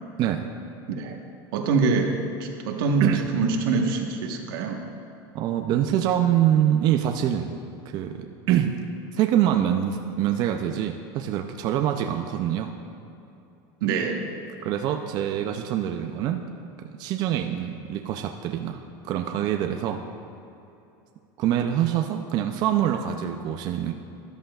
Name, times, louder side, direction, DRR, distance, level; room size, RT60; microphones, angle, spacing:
voice 1, 1.5-2.1 2.4-3.0 3.3-4.8 13.8-14.3, right 4 dB, 80° right, 3 dB, 1.2 m, -24 dB
voice 2, 5.3-7.5 7.9-8.8 9.1-12.7 14.6-16.5 16.8-20.0 21.4-23.9, right 10 dB, 35° right, 5 dB, 0.4 m, -25 dB
13.0 x 11.5 x 2.3 m, 2.8 s
supercardioid pair, 165°, 12 cm